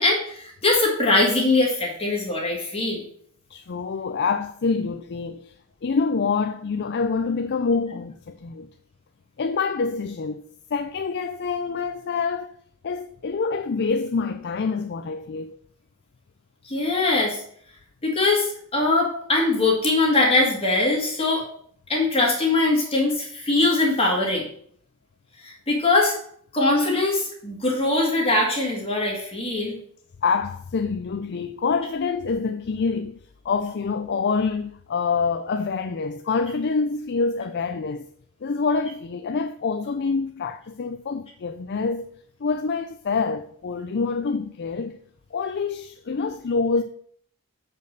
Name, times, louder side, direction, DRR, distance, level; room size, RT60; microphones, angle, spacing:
voice 1, 0.0-3.0 16.7-17.4 18.0-21.4 21.9-24.5 25.4-26.1 26.5-29.8, left 2 dB, 25° left, 1.9 m, -22 dB
voice 2, 3.5-5.5 5.8-8.7 9.4-12.6 12.8-15.6 30.2-33.2 33.4-38.1 38.4-42.1 42.4-45.0 45.3-46.8, left 4 dB, 50° left, 0.5 m, -26 dB
6.9 x 5.3 x 6.5 m
head